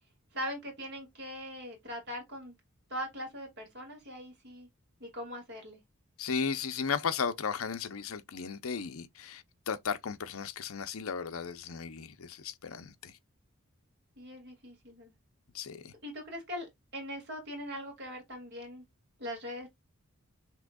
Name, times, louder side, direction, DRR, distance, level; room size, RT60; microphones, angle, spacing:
voice 1, 0.3-2.6 2.9-4.7 5.0-5.8 14.2-15.1 16.0-16.7 16.9-18.8 19.2-19.7, equal, 50° right, 2.2 m, -41 dB
voice 2, 6.2-13.1 15.5-15.9, left 6 dB, 80° left, 0.6 m, -35 dB
6.1 x 3.0 x 2.3 m
head